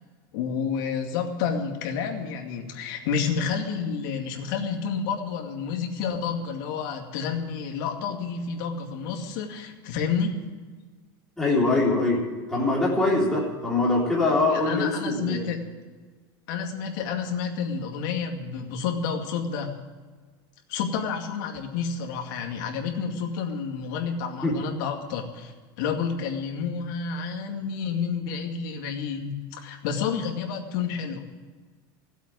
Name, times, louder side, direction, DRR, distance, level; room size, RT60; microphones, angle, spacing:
voice 1, 0.3-10.5 14.5-15.6 16.5-19.7 20.7-31.2, left 6 dB, 60° left, 2 dB, 2.3 m, -30 dB
voice 2, 11.4-12.2 12.5-15.4 24.4-24.5, left 2 dB, 5° left, -6 dB, 3.6 m, -23 dB
15.5 x 8.2 x 9.4 m, 1.4 s
supercardioid pair, 165°, 12 cm